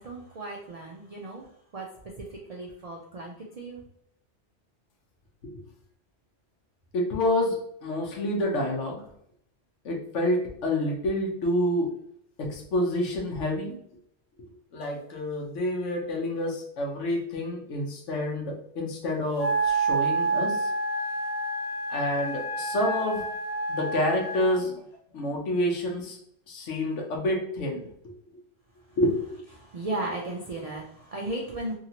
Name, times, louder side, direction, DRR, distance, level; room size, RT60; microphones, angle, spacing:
voice 1, 0.0-1.9 2.2-3.8 29.6-31.7, right 2 dB, 75° right, -1 dB, 0.3 m, -36 dB
voice 2, 6.9-9.0 9.8-11.9 12.5-13.8 14.7-20.7 21.9-23.2 23.7-24.7 25.1-26.2 26.5-27.8 29.0-29.1, left 1 dB, 90° left, 0 dB, 1.1 m, -28 dB
Wind instrument woodwind instrument, 19.4-24.6, right 3 dB, 65° left, 1.1 m, -28 dB
2.9 x 2.8 x 2.8 m, 0.70 s
omnidirectional pair, 1.2 m